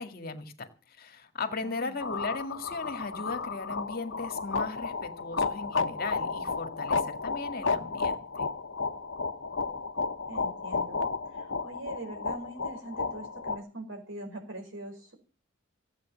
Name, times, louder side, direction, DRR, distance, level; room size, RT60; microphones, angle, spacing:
voice 1, 0.0-8.2, left 3 dB, 50° left, 7 dB, 2.0 m, -37 dB
voice 2, 1.6-1.9 10.3-11.0 11.2-15.1, right 1 dB, 70° right, 5 dB, 5.0 m, -42 dB
sound 1, 2.0-13.6, left 4 dB, 65° left, 1.0 m, -32 dB
16.0 x 8.6 x 7.4 m, 0.36 s
head